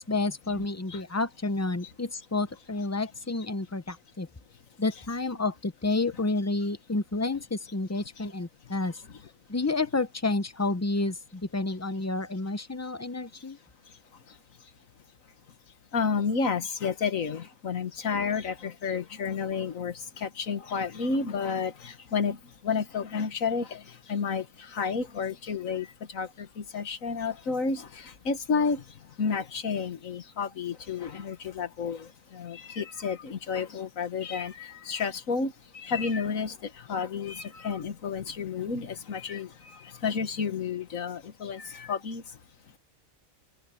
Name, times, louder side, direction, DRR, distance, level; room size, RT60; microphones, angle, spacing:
voice 1, 0.0-4.3 4.8-9.0 9.5-13.6, left 2 dB, 20° left, 0.5 m, -30 dB
voice 2, 13.9-14.7 15.9-42.4, left 5 dB, 80° left, 1.9 m, -31 dB
omnidirectional pair, 1.4 m